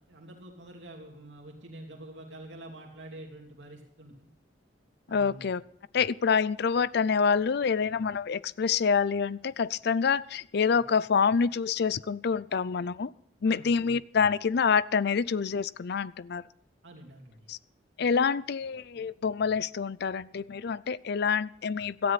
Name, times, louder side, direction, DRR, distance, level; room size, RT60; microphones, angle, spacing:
voice 1, 0.0-4.3 5.1-5.5 13.4-13.7 16.8-17.4, right 1 dB, 75° right, 1 dB, 2.8 m, -47 dB
voice 2, 5.1-5.6 5.9-13.1 13.4-16.4 17.5-17.6 18.0-22.1, left 6 dB, 60° left, 20 dB, 0.5 m, -27 dB
17.5 x 13.0 x 4.1 m, 0.74 s
head